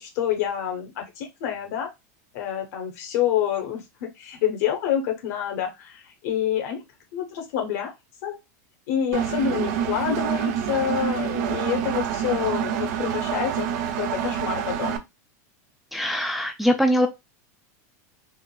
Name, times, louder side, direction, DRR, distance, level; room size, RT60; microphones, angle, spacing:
voice 1, 0.0-1.9 2.3-6.8 7.1-7.9 8.2-8.4 8.9-13.7 13.9-15.0, left 9 dB, 70° left, 4 dB, 1.1 m, -27 dB
Engine, 9.1-15.0, right 9 dB, 60° right, 0.5 m, -27 dB
voice 2, 15.9-17.1, equal, ahead, 4 dB, 0.3 m, -22 dB
3.6 x 2.1 x 2.3 m, 0.22 s
supercardioid pair, 135°, 9 cm